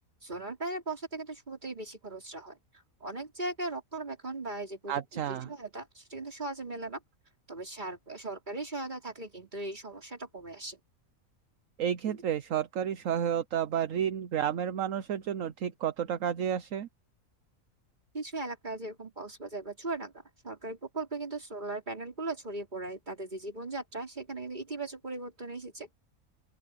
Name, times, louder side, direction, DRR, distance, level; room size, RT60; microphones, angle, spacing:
voice 1, 0.2-2.6 3.0-7.0 7.5-10.8 12.1-12.2 18.1-25.9, right 2 dB, 30° right, 4.1 m, -38 dB
voice 2, 4.9-5.5 11.8-16.9, right 9 dB, 65° right, 1.2 m, -31 dB
open air
omnidirectional pair, 1.5 m